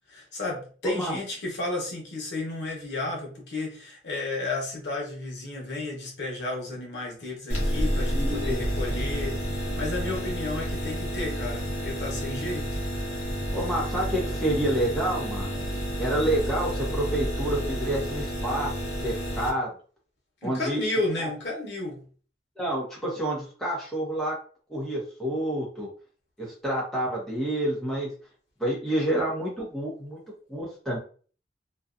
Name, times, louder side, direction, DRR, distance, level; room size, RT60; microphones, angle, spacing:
voice 1, 0.1-12.8 20.4-22.0, left 2 dB, 80° left, -2 dB, 1.0 m, -32 dB
voice 2, 0.8-1.2 8.1-8.6 13.5-15.5 16.0-18.7 19.0-19.7 20.4-20.8 21.2-21.3 22.6-24.3 24.7-25.9 26.4-28.1 28.6-30.2 30.5-31.0, right 1 dB, 5° left, -5 dB, 0.8 m, -28 dB
sound 1, 7.5-19.5, equal, 40° left, 0.8 m, -30 dB
2.6 x 2.2 x 2.4 m, 0.41 s
head